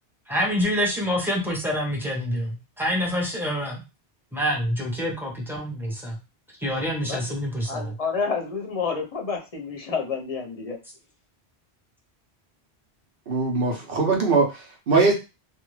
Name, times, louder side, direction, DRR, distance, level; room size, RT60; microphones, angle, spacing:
voice 1, 0.3-3.8 4.3-6.2 6.6-8.0, equal, ahead, -2 dB, 0.7 m, -26 dB
voice 2, 7.7-10.8, left 5 dB, 40° left, 1 dB, 0.7 m, -29 dB
voice 3, 13.3-15.1, right 4 dB, 60° right, 1 dB, 1.0 m, -21 dB
2.6 x 2.4 x 3.1 m, 0.28 s
omnidirectional pair, 1.1 m